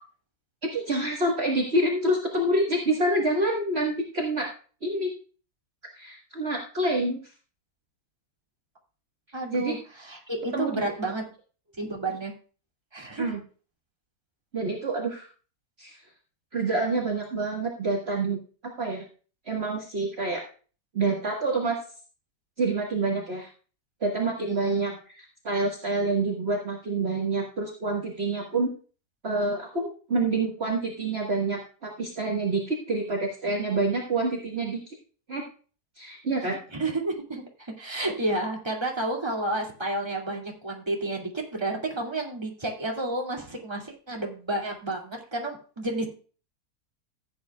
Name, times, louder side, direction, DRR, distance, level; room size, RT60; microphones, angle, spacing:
voice 1, 0.6-4.5 4.8-5.1 6.0-7.2 9.5-9.7 10.5-10.7 13.2-13.4 14.5-15.3 15.8-16.0 16.5-18.4 18.8-19.0 19.5-20.4 20.9-21.8 22.6-23.5 24.0-28.7 29.2-35.0 35.3-35.4 36.0-36.6, right 2 dB, 40° right, -1 dB, 1.8 m, -27 dB
voice 2, 9.3-11.2 11.8-12.3 12.9-13.3 24.5-24.8 36.7-46.1, right 2 dB, 15° right, 0 dB, 2.5 m, -31 dB
15.5 x 8.7 x 2.3 m, 0.38 s
omnidirectional pair, 1.7 m